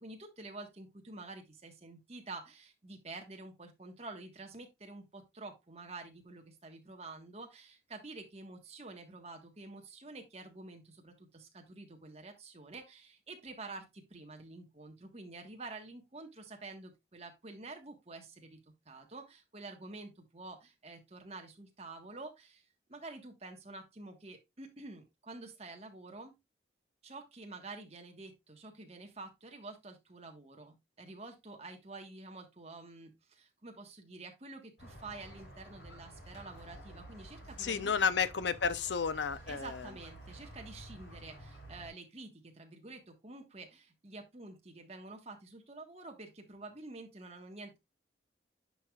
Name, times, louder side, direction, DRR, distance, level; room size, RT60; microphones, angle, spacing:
voice 1, 0.0-18.6 18.8-26.3 27.0-38.2 39.5-47.8, right 3 dB, 35° right, 1.4 m, -49 dB
Squeak, 34.8-41.9, right 1 dB, 65° left, 3.8 m, -51 dB
voice 2, 37.6-39.8, left 6 dB, 85° left, 0.6 m, -32 dB
10.0 x 4.9 x 2.4 m
head